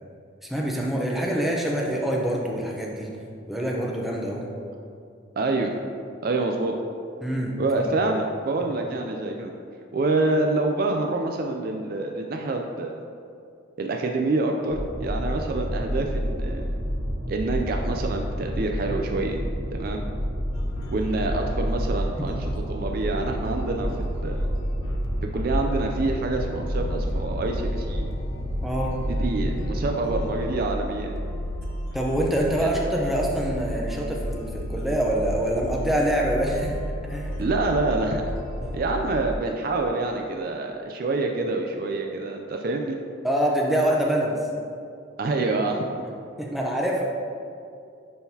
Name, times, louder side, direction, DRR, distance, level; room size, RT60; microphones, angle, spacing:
voice 1, 0.5-3.1 3.5-4.5 7.2-7.6 7.8-8.0 22.2-22.3 28.6-29.0 31.9-36.7 37.1-37.3 38.6-38.8 43.2-44.4 46.4-47.0, right 1 dB, ahead, -2 dB, 0.6 m, -25 dB
voice 2, 5.4-5.7 6.2-6.8 7.6-9.5 9.9-13.0 13.8-16.7 17.3-19.4 19.7-20.0 20.9-22.4 22.7-24.5 25.3-28.1 29.1-31.1 32.6-32.7 37.4-38.2 38.7-43.0 45.2-45.9, right 2 dB, 50° right, 3 dB, 0.4 m, -26 dB
sound 1, 14.7-30.3, equal, 70° right, 0.8 m, -30 dB
sound 2, 20.5-39.4, equal, 90° left, 0.5 m, -32 dB
10.0 x 3.8 x 2.8 m, 2.5 s
head